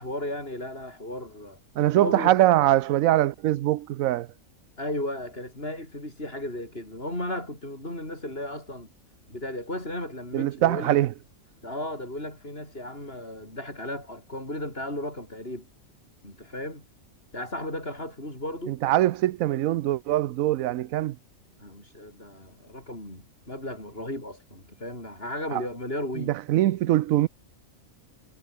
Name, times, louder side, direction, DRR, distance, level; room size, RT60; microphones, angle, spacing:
voice 1, 0.0-1.6 2.0-2.3 4.8-8.9 9.3-11.0 11.6-15.7 16.2-16.9 17.3-18.8 21.6-26.4, left 1 dB, 45° left, 8.4 m, -35 dB
voice 2, 1.8-4.3 10.3-11.1 18.7-21.2 25.5-25.6 26.2-27.3, right 14 dB, 80° right, 1.0 m, -23 dB
omnidirectional pair, 1.4 m